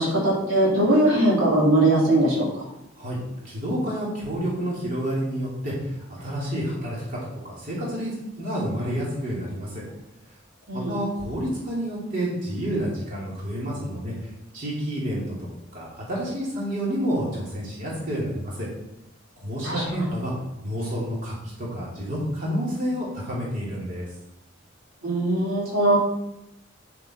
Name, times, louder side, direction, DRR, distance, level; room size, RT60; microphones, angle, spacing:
voice 1, 0.0-2.5 10.7-11.0 19.6-19.8 25.0-26.0, right 1 dB, 80° right, -5 dB, 3.7 m, -20 dB
voice 2, 3.0-7.2 7.4-9.8 10.7-18.7 19.4-20.3 20.6-24.1, equal, 40° right, -6 dB, 3.1 m, -29 dB
9.6 x 7.4 x 4.4 m, 0.85 s
head